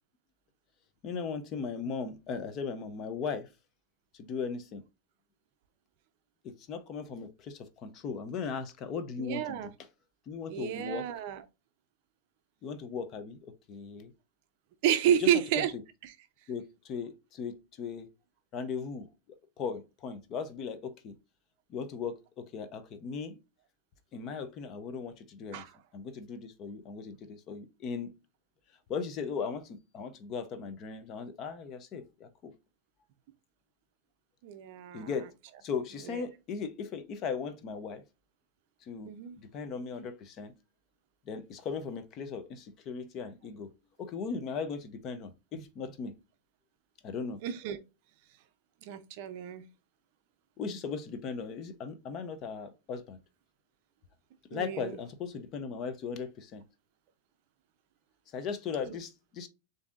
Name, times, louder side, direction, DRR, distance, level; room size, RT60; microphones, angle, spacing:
voice 1, 1.0-3.5 4.1-4.8 6.4-9.7 10.3-11.1 12.6-14.1 15.2-15.6 16.5-18.1 18.5-19.1 19.6-21.1 21.7-23.4 24.1-25.6 25.9-28.1 28.9-32.5 34.9-35.3 35.6-38.0 38.8-39.1 39.4-40.5 41.3-43.7 44.0-46.1 47.0-47.4 50.6-53.2 54.5-56.6 58.3-59.5, left 5 dB, 25° left, 0.5 m, -38 dB
voice 2, 9.2-9.7 10.5-11.4 14.8-15.7 16.0-16.1 25.5-25.7 34.4-35.1 36.1-36.2 39.0-39.4 47.4-47.8 48.8-49.7 54.5-55.0 58.9-59.0, right 10 dB, 45° right, 0.5 m, -30 dB
7.0 x 2.7 x 2.4 m
supercardioid pair, 170°, 0 cm